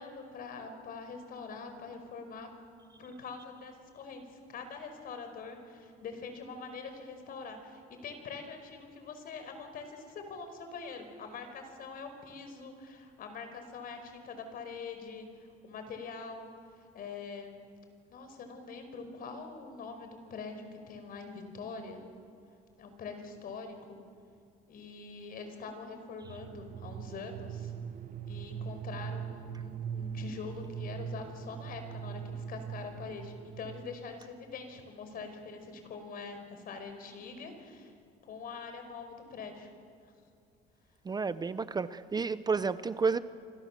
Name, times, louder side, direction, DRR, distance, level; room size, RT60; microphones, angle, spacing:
voice 1, 0.0-2.5 3.0-16.5 16.9-17.6 18.1-22.0 22.8-24.0 24.7-27.7 28.3-37.9 38.2-39.7, left 4 dB, 60° left, 7 dB, 5.1 m, -44 dB
sound 1, 26.2-34.0, right 7 dB, 55° right, 1.2 m, -41 dB
voice 2, 41.0-43.2, right 5 dB, 25° right, 13 dB, 0.8 m, -31 dB
29.0 x 25.5 x 7.5 m, 2.3 s
cardioid pair, 110°, 17 cm